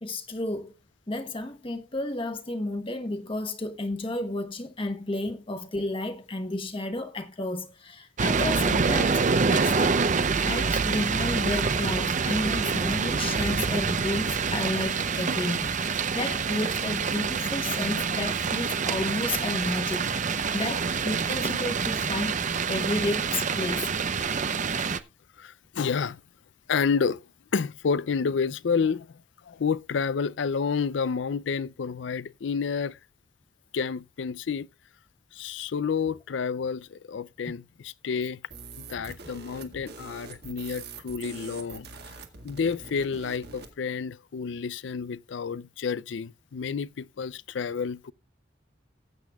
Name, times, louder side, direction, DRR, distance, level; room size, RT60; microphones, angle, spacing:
voice 1, 0.0-0.7 1.1-9.2 9.5-10.1 10.4-20.1 20.5-22.4 22.7-23.9, left 2 dB, 30° left, 1.2 m, -32 dB
sound 1, 8.2-25.0, right 5 dB, 45° right, 0.7 m, -26 dB
voice 2, 25.4-26.2 26.7-27.2 27.5-29.1 29.5-33.0 33.7-34.7 35.3-38.4 38.8-41.9 42.4-48.1, left 5 dB, 80° left, 0.4 m, -29 dB
sound 2, 38.5-43.7, right 4 dB, 60° right, 2.0 m, -44 dB
18.5 x 8.3 x 2.3 m
head